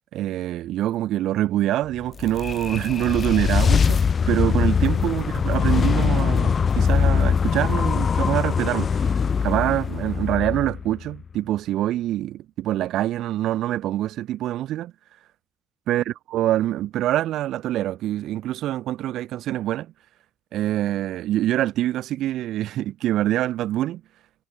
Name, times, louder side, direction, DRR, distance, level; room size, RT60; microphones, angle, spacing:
voice 1, 0.1-9.1 9.4-14.9 15.9-19.9 20.5-24.0, right 13 dB, 85° right, 5.1 m, -25 dB
sound 1, 2.0-11.2, left 6 dB, 45° left, 1.4 m, -22 dB
cardioid pair, 90°, 0 cm